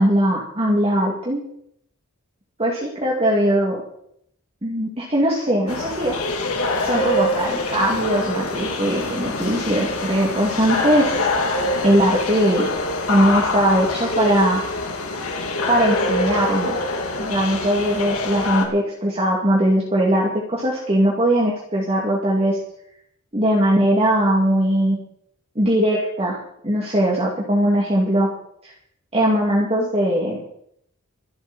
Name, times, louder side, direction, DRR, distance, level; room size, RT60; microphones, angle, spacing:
voice 1, 0.0-1.4 2.6-3.8 4.6-6.1 6.8-11.3 11.8-12.7 13.1-14.6 15.7-16.8 17.2-22.6 23.3-25.0 25.6-26.4 26.6-28.3 28.6-28.7 29.1-30.4, right 1 dB, 30° right, -3 dB, 2.7 m, -20 dB
sound 1, 5.7-18.7, left 2 dB, 85° left, 2.7 m, -24 dB
25.5 x 8.6 x 4.4 m, 0.70 s
head